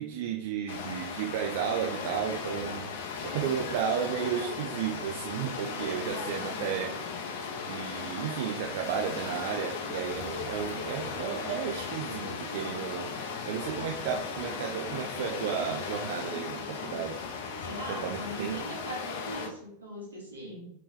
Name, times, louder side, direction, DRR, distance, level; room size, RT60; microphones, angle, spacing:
voice 1, 0.0-6.9 7.6-17.2 17.9-18.6, right 8 dB, 50° right, 2 dB, 0.4 m, -33 dB
sound 1, 0.7-19.5, left 5 dB, 55° left, 0.7 m, -37 dB
sound 2, 6.1-7.4 8.5-10.7, equal, 5° right, 0.9 m, -56 dB
voice 2, 17.6-20.7, right 1 dB, 75° right, -2 dB, 1.5 m, -40 dB
4.2 x 3.1 x 3.3 m, 0.72 s
figure-of-eight pair, 90°, 0 cm